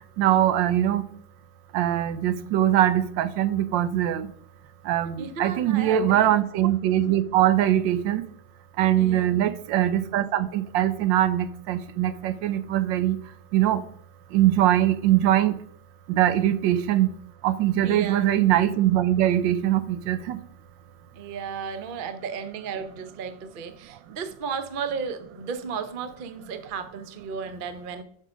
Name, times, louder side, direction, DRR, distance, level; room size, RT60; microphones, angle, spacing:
voice 1, 0.2-1.0 1.7-4.3 4.8-8.2 8.8-13.2 13.5-13.8 14.3-15.5 16.1-17.1 17.4-20.4, right 12 dB, 75° right, 1.2 m, -22 dB
voice 2, 5.2-6.3 9.0-9.4 17.8-18.3 21.1-28.0, right 6 dB, 60° right, 0.5 m, -34 dB
7.4 x 6.6 x 5.1 m
omnidirectional pair, 2.1 m